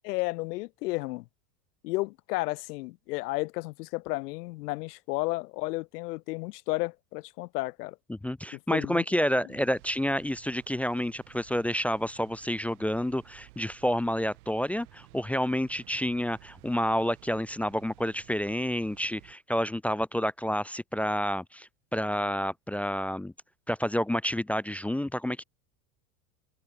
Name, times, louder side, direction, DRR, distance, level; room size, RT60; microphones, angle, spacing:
voice 1, 0.0-1.2 1.8-8.0 8.7-9.0, left 22 dB, 75° left, 1.0 m, -32 dB
voice 2, 8.1-23.3 23.7-25.4, equal, 5° left, 0.4 m, -29 dB
sound 1, 9.5-19.4, right 24 dB, 65° right, 3.3 m, -55 dB
supercardioid pair, 145°, 48 cm